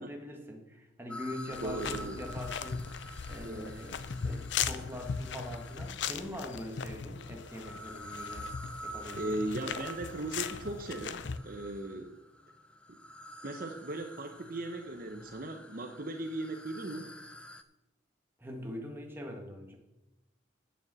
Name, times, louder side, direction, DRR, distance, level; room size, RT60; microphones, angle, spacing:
voice 1, 0.0-8.5 8.8-9.4 18.4-19.8, left 1 dB, 10° right, 2 dB, 1.6 m, -43 dB
sound 1, 1.1-6.3 7.1-17.6, equal, 5° left, 0.5 m, -48 dB
sound 2, 1.5-11.4, left 6 dB, 70° left, 0.6 m, -38 dB
voice 2, 1.6-2.2 3.4-3.7 9.1-12.1 13.4-17.1, right 2 dB, 50° right, 5 dB, 0.8 m, -38 dB
9.2 x 6.8 x 7.5 m, 0.99 s
head